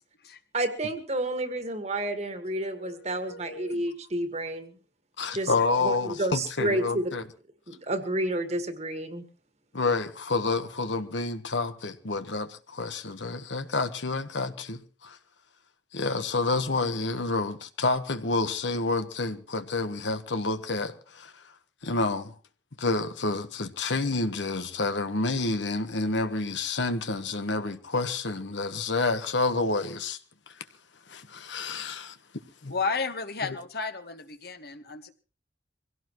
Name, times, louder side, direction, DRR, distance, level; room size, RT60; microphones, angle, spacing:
voice 1, 0.5-4.8 5.3-5.5 5.8-7.1 7.7-9.2, right 1 dB, 35° right, 1.8 m, -30 dB
voice 2, 2.6-3.8 32.7-35.1, left 4 dB, 60° left, 1.5 m, -34 dB
voice 3, 5.2-7.2 9.7-15.2 15.9-21.3 21.8-22.3 22.8-30.2 31.1-32.1 32.6-32.7, left 3 dB, 85° left, 1.3 m, -29 dB
24.0 x 17.0 x 3.1 m
head